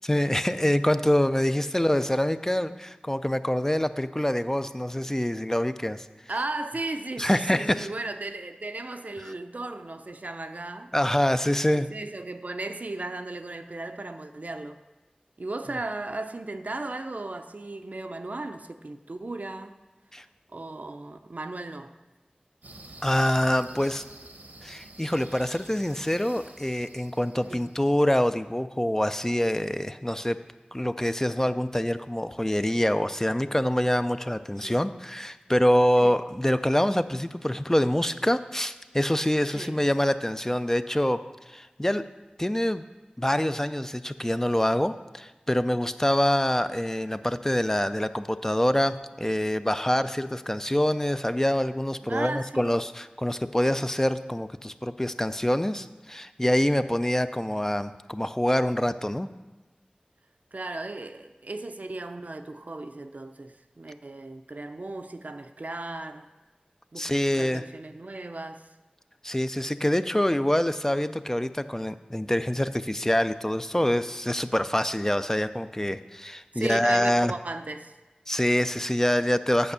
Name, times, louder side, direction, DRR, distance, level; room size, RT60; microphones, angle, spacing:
voice 1, 0.0-6.1 7.2-7.9 10.9-11.9 20.1-20.2 23.0-24.0 24.6-30.4 30.7-42.1 42.4-42.8 43.2-59.3 67.0-67.6 69.2-77.3 78.3-79.7, left 1 dB, 15° left, 11 dB, 0.4 m, -25 dB
voice 2, 6.3-10.9 11.7-14.8 15.4-19.8 20.5-21.9 27.4-27.7 34.6-34.8 36.0-36.2 39.5-39.8 52.0-52.8 60.5-66.3 66.9-67.0 67.3-68.6 76.5-78.0, right 2 dB, 65° right, 8 dB, 0.5 m, -36 dB
sound 1, 22.6-28.0, right 2 dB, 80° right, 0.9 m, -49 dB
8.6 x 5.2 x 6.7 m, 1.1 s
wide cardioid pair, 40°, 3 cm